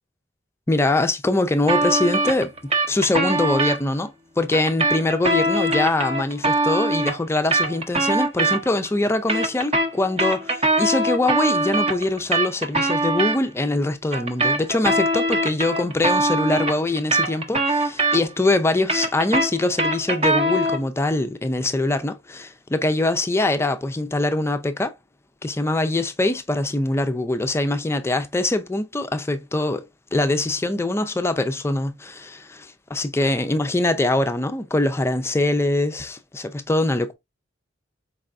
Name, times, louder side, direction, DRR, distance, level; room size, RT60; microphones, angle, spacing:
voice 1, 0.7-24.9 25.4-37.1, left 2 dB, 15° left, 0.4 m, -23 dB
sound 1, 1.7-3.8 4.5-8.9 9.1-13.4 14.1-18.5 18.7-20.9, right 2 dB, 35° right, 0.7 m, -22 dB
4.7 x 3.4 x 2.5 m
head